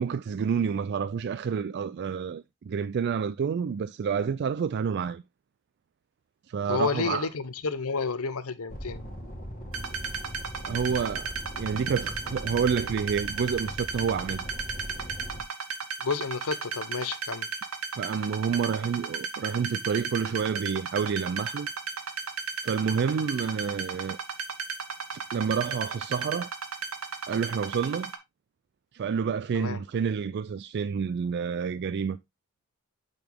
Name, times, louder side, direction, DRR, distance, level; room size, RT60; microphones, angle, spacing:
voice 1, 0.0-5.2 6.5-7.3 10.7-14.4 17.9-21.7 22.6-24.2 25.3-26.5 27.3-28.1 28.9-32.2, right 6 dB, 50° right, 0.3 m, -29 dB
voice 2, 6.7-9.0 16.0-17.5 29.5-29.8, left 5 dB, 75° left, 0.8 m, -30 dB
sound 1, 8.7-15.4, equal, 35° left, 2.4 m, -40 dB
sound 2, 9.7-28.2, right 5 dB, 70° right, 1.3 m, -34 dB
8.7 x 4.0 x 3.5 m
head